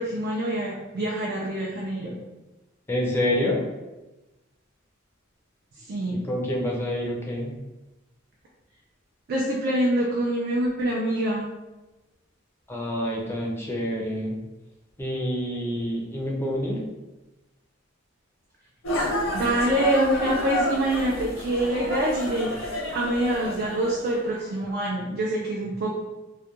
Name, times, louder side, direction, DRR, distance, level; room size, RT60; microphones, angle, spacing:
voice 1, 0.0-2.2 5.9-6.2 9.3-11.5 19.3-22.5 22.9-25.9, right 1 dB, 50° right, -3 dB, 0.4 m, -25 dB
voice 2, 2.9-3.6 6.1-7.6 12.7-14.4 15.0-16.8, left 1 dB, 10° left, -3 dB, 0.5 m, -27 dB
sound 1, 18.8-24.4, left 1 dB, 85° left, 0.8 m, -30 dB
2.3 x 2.1 x 2.8 m, 1.1 s
head